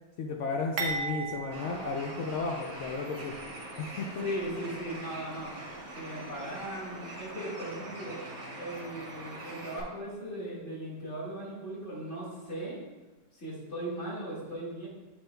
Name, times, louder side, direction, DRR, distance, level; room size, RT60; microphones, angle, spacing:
voice 1, 0.2-3.4 3.8-4.3, left 4 dB, 75° left, 2 dB, 0.7 m, -34 dB
sound 1, 0.8-2.9 3.3-3.4 4.3-4.5, right 4 dB, 70° right, 1.4 m, -37 dB
Bird, 1.5-9.8, right 2 dB, 90° right, 2.2 m, -43 dB
voice 2, 4.2-5.5 5.9-8.2 8.6-12.8 13.3-14.9, right 1 dB, 40° left, -6 dB, 2.1 m, -38 dB
7.5 x 7.1 x 2.2 m, 1.2 s
omnidirectional pair, 1.8 m